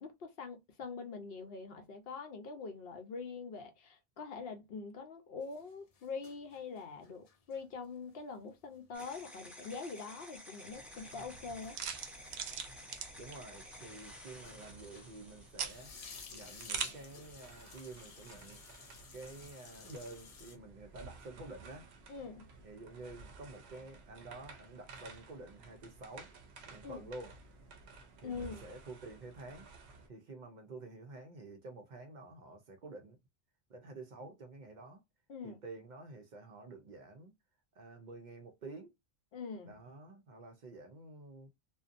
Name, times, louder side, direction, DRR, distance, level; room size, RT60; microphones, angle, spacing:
voice 1, 0.0-11.8 22.1-22.5 26.8-27.0 28.2-28.7 35.3-35.6 39.3-39.8, left 4 dB, 70° left, 0.9 m, -44 dB
sound 1, 5.4-15.3 15.5-20.6, left 5 dB, 50° left, 0.5 m, -56 dB
sound 2, 8.9-16.4, left 1 dB, ahead, 0.6 m, -53 dB
sound 3, 10.7-30.1, right 6 dB, 85° right, 0.8 m, -48 dB
voice 2, 13.2-15.9 16.3-18.6 19.1-21.9 22.6-26.3 26.7-27.3 28.2-29.7 30.1-33.2 33.7-35.0 35.4-37.3 37.8-38.9 39.7-41.5, right 2 dB, 55° right, 0.6 m, -50 dB
2.6 x 2.1 x 2.5 m
omnidirectional pair, 1.1 m